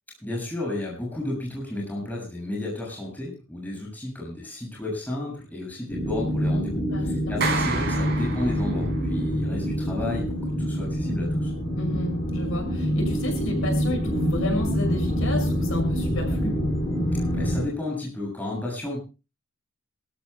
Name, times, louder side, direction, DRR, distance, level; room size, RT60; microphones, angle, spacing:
voice 1, 0.2-11.5 17.3-19.0, left 2 dB, 10° left, -3 dB, 7.0 m, -32 dB
sound 1, 5.9-17.7, equal, 25° left, 3.1 m, -26 dB
voice 2, 6.9-7.4 11.8-16.6, left 1 dB, 75° left, 2 dB, 5.9 m, -31 dB
Clapping, 7.4-9.1, right 4 dB, 50° right, 4.9 m, -30 dB
27.0 x 13.5 x 2.2 m, 0.31 s
head